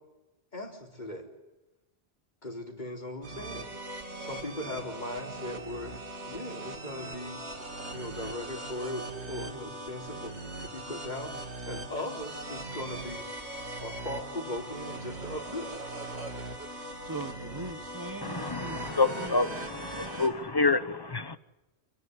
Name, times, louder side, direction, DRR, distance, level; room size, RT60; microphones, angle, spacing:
voice 1, 0.5-1.3 2.4-3.7 4.2-7.4 7.9-13.3 13.8-15.7, left 1 dB, 40° left, 4.2 m, -39 dB
sound 1, 3.2-20.3, right 1 dB, 75° right, 2.8 m, -40 dB
voice 2, 17.0-18.8 19.2-19.6, right 2 dB, 20° right, 1.2 m, -40 dB
voice 3, 18.2-21.4, left 3 dB, 25° left, 0.8 m, -28 dB
28.5 x 11.5 x 9.5 m
omnidirectional pair, 1.1 m